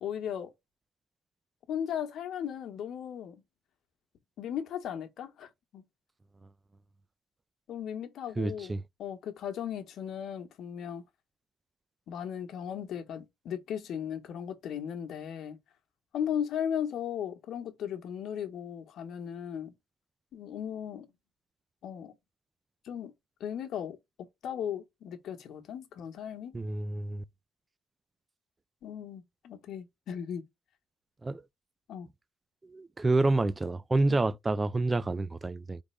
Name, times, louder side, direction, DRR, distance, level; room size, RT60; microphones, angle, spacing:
voice 1, 0.0-0.5 1.7-3.4 4.4-5.5 5.7-5.8 7.7-11.0 12.1-15.6 16.1-19.7 20.3-21.1 21.8-22.1 22.8-23.1 23.4-24.0 24.4-26.5 28.8-30.4 31.9-32.1 34.1-34.2, left 9 dB, 65° left, 1.0 m, -36 dB
voice 2, 8.4-8.8 26.5-27.2 31.2-31.4 32.7-35.8, right 2 dB, 25° right, 0.3 m, -28 dB
3.9 x 3.5 x 3.3 m
supercardioid pair, 65°, 0 cm